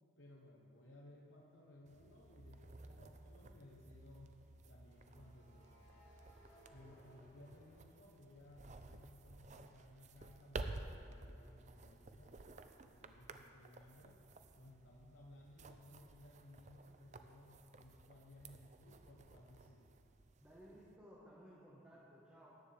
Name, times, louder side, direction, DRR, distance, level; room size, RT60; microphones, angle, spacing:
voice 1, 0.2-4.4 4.7-6.0 6.7-12.4 12.8-14.2 14.6-19.9, left 1 dB, 80° left, -3 dB, 1.0 m, -60 dB
sound 1, 1.5-1.8 4.8-8.7 9.1-12.7, equal, 35° left, 2.6 m, -69 dB
sound 2, 1.9-21.0, right 2 dB, 35° right, 0.4 m, -54 dB
voice 2, 20.4-22.5, equal, 5° right, -7 dB, 1.4 m, -59 dB
13.5 x 10.0 x 3.4 m, 2.5 s
head